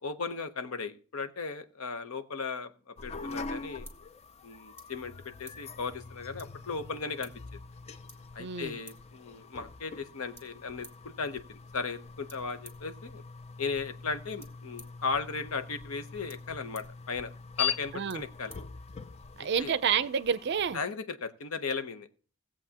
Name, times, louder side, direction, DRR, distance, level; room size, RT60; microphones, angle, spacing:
voice 1, 0.0-3.9 4.4-5.1 5.4-7.3 8.3-13.2 13.6-17.3 17.6-18.5 19.4-19.8 20.7-22.1, left 4 dB, 70° left, 0.8 m, -36 dB
sound 1, 3.0-20.8, left 5 dB, 30° left, 0.4 m, -43 dB
sound 2, 3.1-19.4, right 1 dB, 10° left, 1.6 m, -58 dB
voice 2, 8.4-8.8 17.9-18.2 19.4-20.8, right 7 dB, 50° right, 0.5 m, -29 dB
18.5 x 7.6 x 2.9 m
head